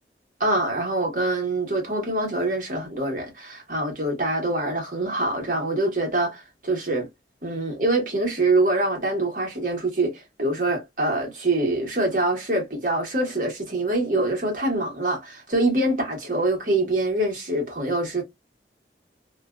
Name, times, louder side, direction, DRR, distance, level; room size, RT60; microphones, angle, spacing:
voice 1, 0.4-7.1 7.4-18.2, right 2 dB, 45° right, 1.2 m, -25 dB
2.5 x 2.3 x 2.2 m
head